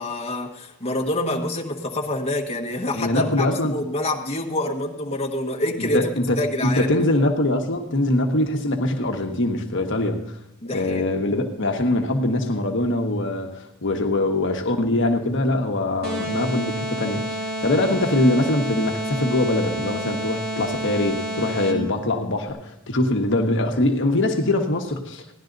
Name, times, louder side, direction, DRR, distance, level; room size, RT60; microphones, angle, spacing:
voice 1, 0.0-6.1 6.4-7.0 10.6-11.1 13.9-14.0, left 1 dB, 30° left, 0 dB, 1.4 m, -27 dB
voice 2, 2.9-3.8 5.8-10.2 10.7-25.2, left 1 dB, 60° left, 3 dB, 1.2 m, -23 dB
sound 1, 16.0-22.0, right 1 dB, 45° right, 3.5 m, -29 dB
16.5 x 11.0 x 3.9 m, 0.80 s
head